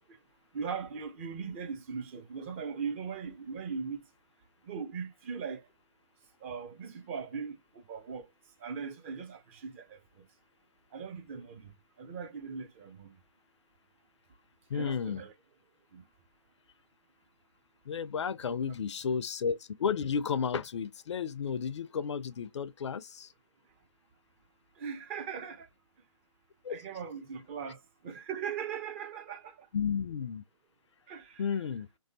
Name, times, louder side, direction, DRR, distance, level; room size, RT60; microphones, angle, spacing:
voice 1, 0.5-4.0 4.6-5.7 6.4-8.3 8.6-10.2 10.9-11.7 12.0-13.1 14.7-15.3 15.9-16.0 24.8-25.7 26.7-29.7 31.1-31.4, right 6 dB, 25° right, 0.5 m, -39 dB
voice 2, 14.7-15.2 17.9-23.3 26.6-26.8 29.7-30.4 31.4-31.9, left 6 dB, 65° left, 0.4 m, -32 dB
3.1 x 2.7 x 2.4 m
figure-of-eight pair, 140°, 16 cm